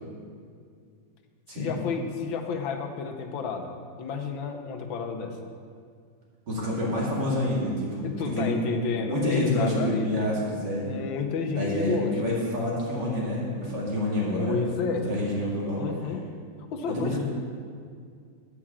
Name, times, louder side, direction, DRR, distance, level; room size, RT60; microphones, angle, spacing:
voice 1, 1.5-3.7 4.0-5.5 8.0-10.3 10.9-12.4 14.4-15.1 15.8-16.2 16.7-17.2, left 5 dB, 85° left, 4 dB, 1.6 m, -31 dB
voice 2, 6.5-8.1 8.3-8.6 9.0-10.9 11.5-14.6 15.0-15.9 16.9-17.2, left 1 dB, 60° right, -5 dB, 2.7 m, -28 dB
8.8 x 4.9 x 7.3 m, 2.2 s
omnidirectional pair, 2.1 m